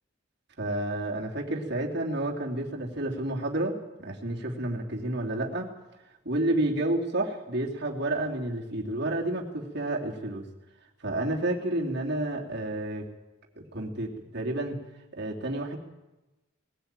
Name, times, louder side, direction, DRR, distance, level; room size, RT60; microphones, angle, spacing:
voice 1, 0.6-5.7 6.2-10.4 11.0-13.1 13.6-14.8 15.1-15.8, right 1 dB, 55° right, 0 dB, 3.1 m, -30 dB
20.5 x 16.0 x 9.0 m, 1.0 s
head